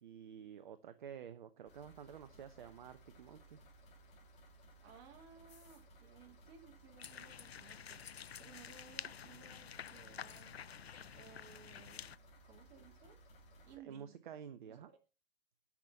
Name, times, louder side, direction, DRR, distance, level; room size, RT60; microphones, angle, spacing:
voice 1, 0.0-3.6 13.8-14.9, right 8 dB, 50° right, 11 dB, 0.9 m, -51 dB
sound 1, 1.7-13.8, right 1 dB, 20° left, 2.8 m, -61 dB
voice 2, 4.8-10.6 11.1-12.1 12.4-13.2 13.7-14.1 14.7-15.0, right 7 dB, 30° right, 3 dB, 2.7 m, -60 dB
sound 2, 7.0-12.2, left 8 dB, 80° left, 0.5 m, -50 dB
10.5 x 6.0 x 6.9 m, 0.32 s
figure-of-eight pair, 125°, 31 cm